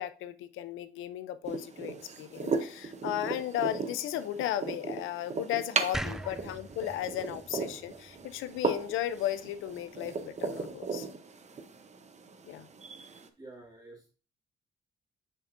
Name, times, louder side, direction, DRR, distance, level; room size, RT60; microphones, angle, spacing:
voice 1, 0.0-11.1 12.5-12.7, left 12 dB, 85° left, 12 dB, 0.6 m, -35 dB
sound 1, 1.4-13.3, right 4 dB, 35° right, 0.8 m, -37 dB
sound 2, 5.9-9.1, right 1 dB, ahead, 0.4 m, -41 dB
voice 2, 13.4-14.1, right 1 dB, 20° right, -7 dB, 2.5 m, -48 dB
7.7 x 6.1 x 2.6 m, 0.34 s
cardioid pair, 90°, 20 cm